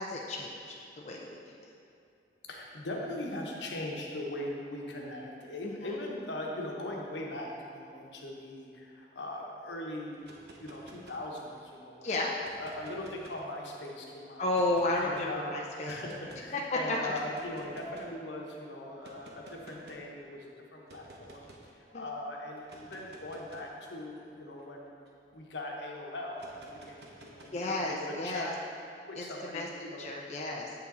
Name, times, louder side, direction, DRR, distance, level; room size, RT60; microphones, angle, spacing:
voice 1, 0.0-1.4 5.6-6.0 12.0-12.3 14.4-16.0 16.5-17.1 21.9-22.0 27.5-28.5 29.2-29.7 30.0-30.7, left 2 dB, 40° left, -2 dB, 0.5 m, -33 dB
voice 2, 2.4-10.2 10.5-12.1 12.6-14.5 15.0-15.6 15.9-21.5 21.7-24.9 25.3-28.6 29.1-30.0, left 1 dB, 85° left, -1 dB, 1.1 m, -40 dB
sound 1, 10.1-11.7 12.3-13.9 14.5-15.3 15.9-16.5 17.1-18.2 19.0-20.1 20.9-21.7 22.6-25.4 26.3-27.9, right 1 dB, 65° right, 0.9 m, -53 dB
7.8 x 5.7 x 3.9 m, 2.6 s
head